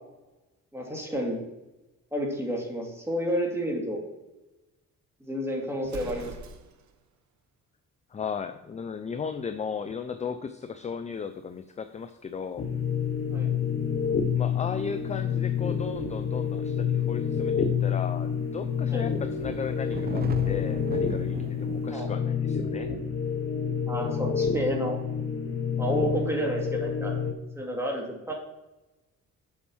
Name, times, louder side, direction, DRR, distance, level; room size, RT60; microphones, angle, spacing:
voice 1, 0.7-1.4 2.1-4.0 5.2-6.3 13.3-13.5 18.9-19.1 21.9-22.1 23.9-25.0 25.8-27.1 27.6-28.3, equal, 10° right, -1 dB, 2.5 m, -30 dB
Explosion, 5.8-7.0, right 3 dB, 70° right, 1.0 m, -42 dB
voice 2, 8.1-12.7 14.3-22.9, left 6 dB, 25° left, 9 dB, 0.5 m, -36 dB
sound 1, 12.6-27.3, left 7 dB, 45° left, 1.2 m, -28 dB
sound 2, 15.0-16.1 16.7-16.9 17.9-18.0 19.1-21.9, right 5 dB, 30° right, 0.6 m, -38 dB
7.2 x 5.3 x 6.2 m, 1.0 s
cardioid pair, 90°, 30 cm